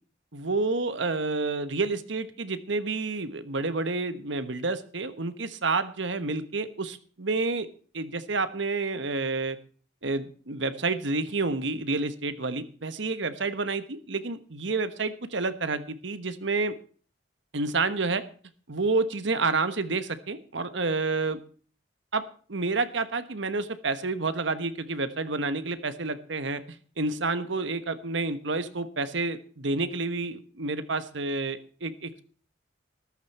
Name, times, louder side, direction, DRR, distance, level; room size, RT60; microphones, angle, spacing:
voice 1, 0.3-7.7 7.9-9.6 10.0-16.7 17.5-18.2 18.7-21.4 22.1-22.2 22.5-32.2, right 3 dB, 75° right, 12 dB, 1.2 m, -29 dB
14.0 x 12.5 x 4.3 m, 0.42 s
head